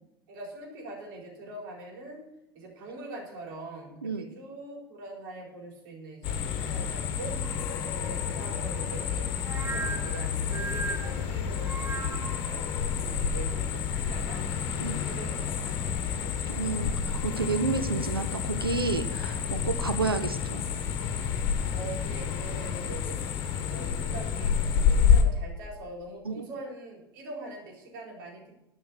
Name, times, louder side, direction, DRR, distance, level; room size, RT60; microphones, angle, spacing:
voice 1, 0.3-2.2 2.5-7.4 7.9-9.3 9.6-14.5 14.9-17.0 21.7-23.2 23.7-24.6 24.9-28.5, right 2 dB, 60° right, -1 dB, 4.0 m, -43 dB
sound 1, 6.2-25.2, left 7 dB, 50° left, 1.3 m, -29 dB
sound 2, 9.4-12.5, right 4 dB, 20° right, 1.0 m, -37 dB
voice 2, 16.5-20.6 26.2-26.5, right 4 dB, 85° right, 8 dB, 0.8 m, -30 dB
12.0 x 5.5 x 8.6 m, 0.86 s
figure-of-eight pair, 75°, 12 cm